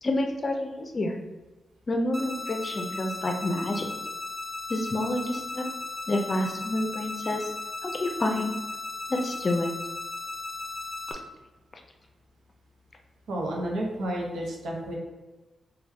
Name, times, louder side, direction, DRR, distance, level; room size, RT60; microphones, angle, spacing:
voice 1, 0.0-1.2 1.9-3.9 4.7-5.7 6.1-7.4 7.8-8.5 9.1-9.7, left 1 dB, 40° left, 3 dB, 0.5 m, -28 dB
sound 1, 2.1-11.1, left 3 dB, 30° right, 0.6 m, -36 dB
voice 2, 13.3-15.0, right 1 dB, 85° right, -1 dB, 0.7 m, -31 dB
3.4 x 2.2 x 3.3 m, 1.2 s
cardioid pair, 75°, 0 cm